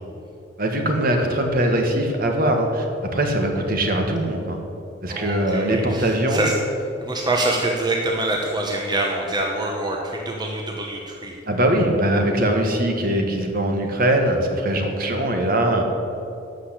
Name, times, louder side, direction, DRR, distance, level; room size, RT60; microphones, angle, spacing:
voice 1, 0.6-4.6 5.0-6.4 11.5-15.8, right 1 dB, 50° right, 3 dB, 1.6 m, -21 dB
voice 2, 5.1-6.5 7.0-11.3, right 2 dB, 25° right, 0 dB, 1.0 m, -25 dB
12.0 x 6.6 x 8.3 m, 2.7 s
head